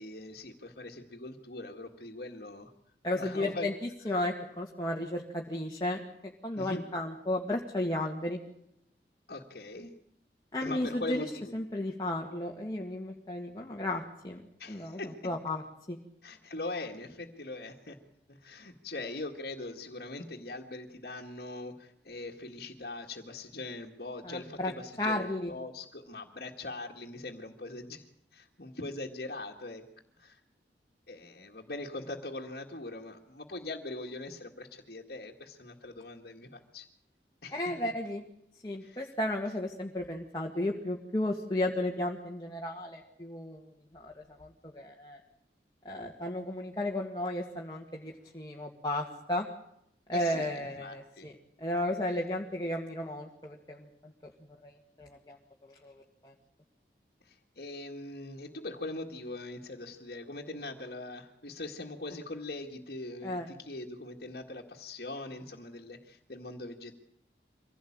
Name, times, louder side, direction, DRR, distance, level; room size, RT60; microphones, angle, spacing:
voice 1, 0.0-2.7 3.1-3.7 6.5-6.8 9.3-9.9 10.6-11.5 14.6-15.3 16.2-18.0 18.3-29.9 30.2-30.4 31.1-36.9 37.4-37.7 38.8-39.1 50.1-51.3 57.2-67.0, left 2 dB, 60° left, -1 dB, 2.0 m, -41 dB
voice 2, 3.0-3.7 4.0-6.0 6.4-8.4 10.5-14.4 14.7-15.6 15.9-16.0 24.2-24.7 25.0-25.5 37.5-38.2 38.6-43.6 43.9-45.2 45.8-49.5 50.1-51.3 51.6-54.1 54.6-55.4 55.8-55.9 56.2-56.3 63.2-63.5, left 1 dB, 25° left, 0 dB, 2.0 m, -34 dB
24.5 x 16.5 x 8.8 m, 0.77 s
head